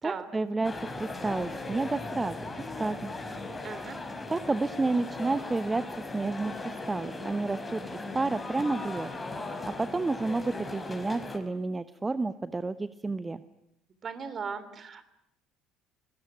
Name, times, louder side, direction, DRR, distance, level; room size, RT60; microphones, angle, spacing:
voice 1, 0.0-2.4 2.8-3.1 4.3-5.8 6.1-9.1 9.8-13.4, right 3 dB, 20° right, 14 dB, 1.0 m, -30 dB
sound 1, 0.6-11.4, left 2 dB, 20° left, 4.8 m, -38 dB
voice 2, 3.6-4.0 14.0-15.0, right 6 dB, 40° right, 13 dB, 3.1 m, -37 dB
25.0 x 21.0 x 9.3 m, 0.81 s
figure-of-eight pair, 60°, 0 cm